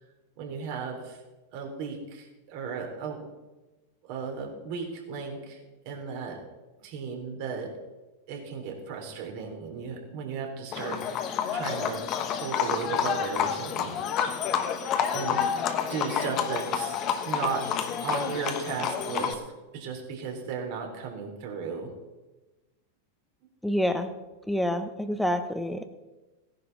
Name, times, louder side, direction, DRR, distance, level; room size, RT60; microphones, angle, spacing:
voice 1, 0.4-1.2 1.5-3.2 4.1-5.6 5.9-6.4 6.8-7.7 8.3-11.0 11.5-12.0 12.3-14.4 15.1-15.4 15.9-17.0 17.2-17.6 18.0-19.4 19.7-21.9, right 6 dB, 55° right, 1 dB, 3.6 m, -35 dB
Livestock farm animals working animals, 10.7-19.3, left 8 dB, 40° left, 1.4 m, -29 dB
voice 2, 23.6-24.1 24.5-25.9, equal, ahead, 8 dB, 1.3 m, -27 dB
17.0 x 10.5 x 4.1 m, 1.1 s
hypercardioid pair, 95°, 0 cm